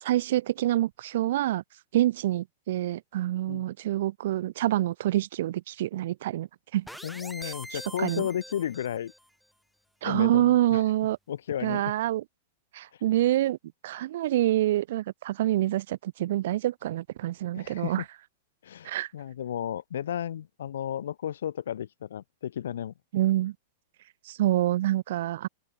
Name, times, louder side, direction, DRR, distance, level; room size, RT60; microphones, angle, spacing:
voice 1, 0.0-1.6 1.9-6.5 6.7-6.9 7.4-8.2 10.0-11.2 11.6-12.2 12.7-13.6 13.8-18.0 18.8-19.1 23.1-23.5 24.3-25.5, right 14 dB, 65° right, 0.3 m, -26 dB
sound 1, 6.9-9.3, equal, ahead, 1.9 m, -43 dB
voice 2, 7.0-9.1 10.0-10.8 11.3-11.8 17.5-17.9 18.6-22.9, left 10 dB, 85° left, 0.9 m, -33 dB
supercardioid pair, 145°, 0 cm